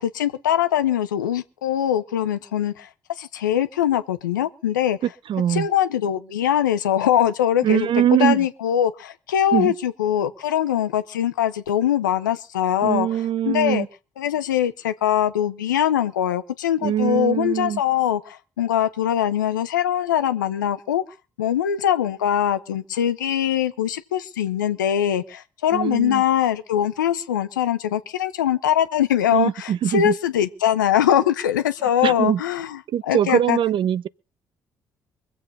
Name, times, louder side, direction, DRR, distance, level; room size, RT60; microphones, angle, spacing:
voice 1, 0.0-2.9 3.2-5.0 5.5-13.2 13.5-13.9 14.2-21.0 21.4-33.6, left 10 dB, 90° left, 0.9 m, -22 dB
voice 2, 5.3-5.7 7.6-8.5 9.5-9.7 12.8-13.9 16.8-17.8 25.7-26.2 29.3-30.1 32.0-32.4 32.9-34.1, right 10 dB, 55° right, 0.8 m, -22 dB
24.0 x 8.0 x 5.4 m
hypercardioid pair, 50°, 10 cm